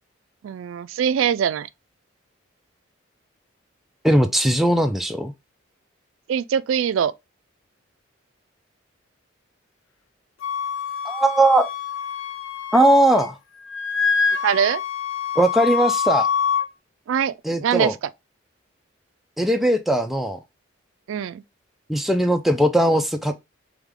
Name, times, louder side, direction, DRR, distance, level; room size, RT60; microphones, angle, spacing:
voice 1, 0.4-1.7 6.3-7.1 14.4-14.8 17.1-17.3 17.6-18.0 21.1-21.4, right 8 dB, 80° right, 0.3 m, -22 dB
voice 2, 4.0-5.3 11.0-11.7 12.7-13.4 15.4-16.3 17.4-17.9 19.4-20.4 21.9-23.3, right 1 dB, ahead, 0.4 m, -19 dB
Wind instrument woodwind instrument, 10.4-13.3 13.6-16.6, left 6 dB, 85° left, 0.5 m, -25 dB
3.5 x 3.5 x 3.6 m
head